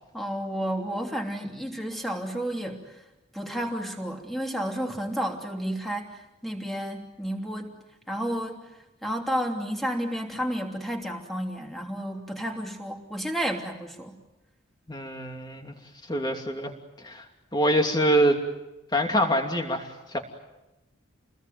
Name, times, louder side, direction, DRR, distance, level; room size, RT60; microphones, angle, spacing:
voice 1, 0.1-2.8 3.3-7.7 8.1-8.6 9.0-14.2, equal, ahead, 2 dB, 3.0 m, -31 dB
voice 2, 14.9-15.7 16.1-16.7 17.0-17.3 17.5-18.4 18.9-20.2, equal, 20° left, 3 dB, 2.9 m, -25 dB
29.5 x 21.0 x 9.4 m, 0.99 s
head